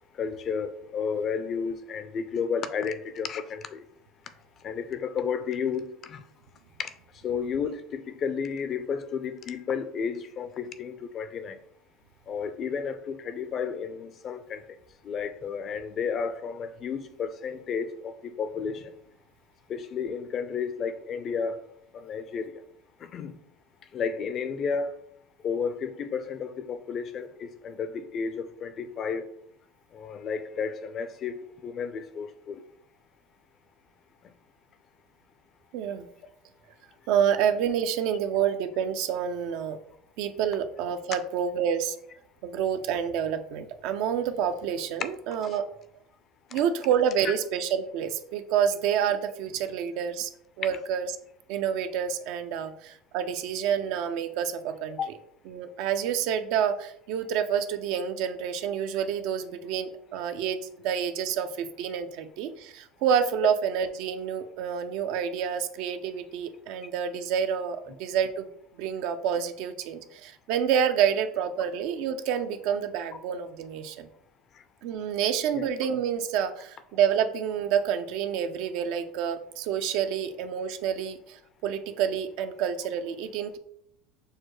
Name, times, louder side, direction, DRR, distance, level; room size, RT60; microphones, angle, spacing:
voice 1, 0.1-3.8 4.6-6.2 6.8-6.9 7.2-11.6 12.3-14.6 15.0-18.9 19.7-21.6 21.9-22.6 23.0-23.4 23.9-25.0 25.4-29.3 29.9-32.6 45.4-45.6 46.5-46.6 47.2-47.3 55.0-55.1 75.5-75.7, left 6 dB, 40° left, 0.4 m, -32 dB
voice 2, 35.7-36.1 37.1-39.8 40.2-42.0 42.4-45.7 46.5-50.3 50.6-51.1 51.5-55.0 55.5-60.6 60.8-68.5 68.8-74.1 74.8-83.6, right 8 dB, 65° right, 0.4 m, -28 dB
6.3 x 2.2 x 3.1 m
supercardioid pair, 110°, 0 cm